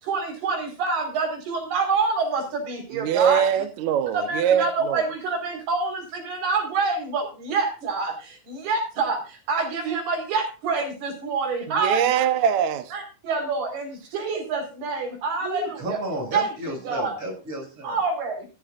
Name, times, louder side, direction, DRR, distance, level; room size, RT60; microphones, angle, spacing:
voice 1, 0.0-3.4 4.1-12.0 12.9-16.0 16.3-17.1 17.8-18.5, right 4 dB, 90° right, 6.6 m, -27 dB
voice 2, 3.0-5.0 11.7-12.9, right 9 dB, 65° right, 1.9 m, -22 dB
voice 3, 15.4-18.0, right 1 dB, 40° right, 8.4 m, -32 dB
15.5 x 14.5 x 2.5 m
omnidirectional pair, 4.4 m